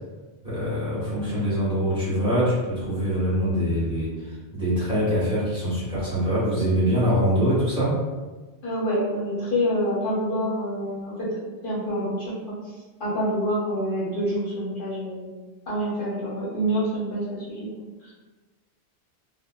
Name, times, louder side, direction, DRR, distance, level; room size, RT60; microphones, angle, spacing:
voice 1, 0.4-7.9, equal, 5° right, -11 dB, 1.2 m, -24 dB
voice 2, 8.6-12.3 12.6-12.7 13.0-15.3 15.7-17.7 18.0-18.1, equal, 60° left, -8 dB, 1.1 m, -27 dB
2.7 x 2.1 x 2.2 m, 1.2 s
omnidirectional pair, 1.0 m